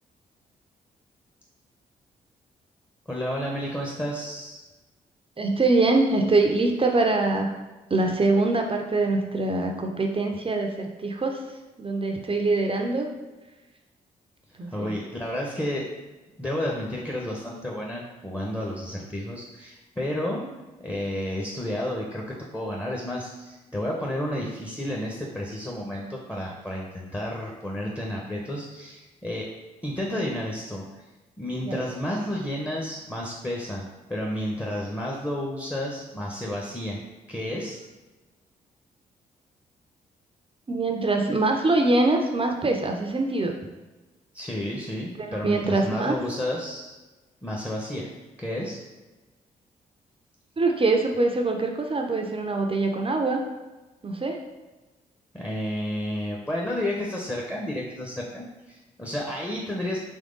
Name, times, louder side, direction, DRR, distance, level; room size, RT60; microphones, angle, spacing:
voice 1, 3.1-4.6 14.6-15.9 16.4-20.4 20.8-29.5 29.8-30.8 31.4-37.0 37.3-37.8 44.3-46.9 47.4-48.1 48.4-48.8 55.3-60.0, left 1 dB, 15° left, -2 dB, 1.0 m, -31 dB
voice 2, 5.4-7.5 7.9-11.4 11.8-13.1 14.6-15.0 31.6-31.8 40.7-43.6 45.2-46.2 50.6-53.4 54.0-54.4, right 2 dB, 30° right, 3 dB, 0.6 m, -24 dB
3.6 x 3.3 x 3.8 m, 1.2 s
hypercardioid pair, 40°, 18 cm